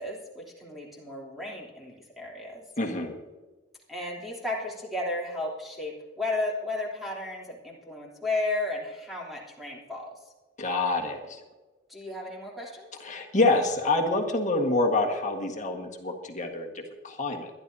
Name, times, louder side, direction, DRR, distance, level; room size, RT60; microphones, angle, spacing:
voice 1, 0.0-2.6 3.9-10.1 11.9-12.9, left 2 dB, ahead, -4 dB, 3.1 m, -34 dB
voice 2, 2.8-3.2 10.6-11.4 13.0-17.5, left 2 dB, 40° left, 3 dB, 1.6 m, -27 dB
21.5 x 11.5 x 2.8 m, 1.2 s
head